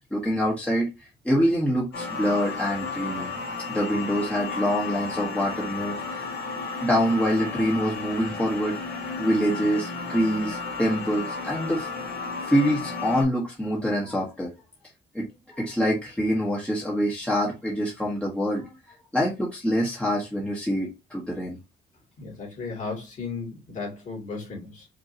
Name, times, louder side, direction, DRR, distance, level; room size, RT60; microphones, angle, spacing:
voice 1, 0.1-0.9 1.2-3.3 3.7-6.3 6.8-8.7 9.2-11.9 12.5-14.5 15.1-18.7 19.1-21.6, equal, 5° left, 1.1 m, -25 dB
sound 1, 1.9-13.2, left 4 dB, 60° left, 1.9 m, -33 dB
voice 2, 22.2-24.9, left 4 dB, 40° left, 2.3 m, -35 dB
5.2 x 2.8 x 2.8 m
cardioid pair, 160°, 19 cm